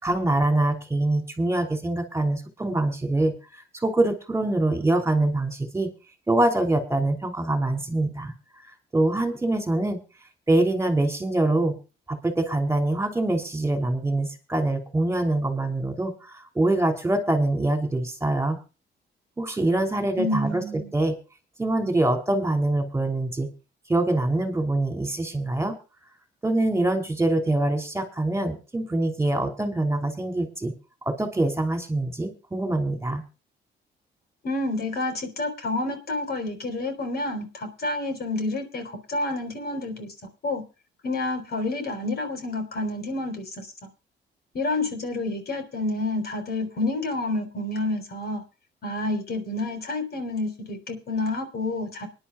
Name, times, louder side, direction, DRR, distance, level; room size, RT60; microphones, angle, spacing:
voice 1, 0.0-5.9 6.3-8.3 8.9-10.0 10.5-11.8 12.1-18.6 19.4-21.2 21.6-23.5 23.9-25.7 26.4-30.7 31.0-33.2, right 2 dB, 15° right, 7 dB, 3.0 m, -24 dB
voice 2, 20.2-20.9 34.4-40.1 40.4-40.6 41.0-43.7 44.5-48.4 48.8-52.1, left 2 dB, 50° left, 7 dB, 3.9 m, -29 dB
24.5 x 10.5 x 2.3 m, 0.31 s
cardioid pair, 90°, 20 cm